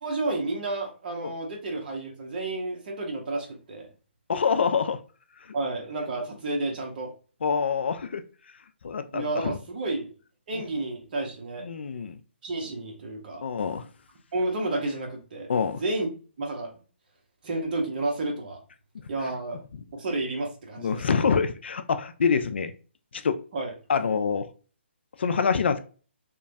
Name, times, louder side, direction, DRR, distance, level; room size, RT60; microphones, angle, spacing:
voice 1, 0.0-3.9 5.5-7.1 9.1-10.1 10.5-11.7 12.4-13.4 14.3-16.1 16.4-16.7 17.4-18.6 19.1-19.6 19.9-21.1 23.5-23.7, right 2 dB, 45° right, 1 dB, 1.0 m, -31 dB
voice 2, 4.3-5.0 7.4-8.2 8.8-9.6 10.5-10.6 11.6-12.2 13.4-13.9 15.5-15.8 20.8-22.7 23.1-23.4 23.9-24.5 25.2-25.8, left 6 dB, 65° left, 10 dB, 0.3 m, -26 dB
3.0 x 2.3 x 2.5 m, 0.37 s
hypercardioid pair, 150°, 6 cm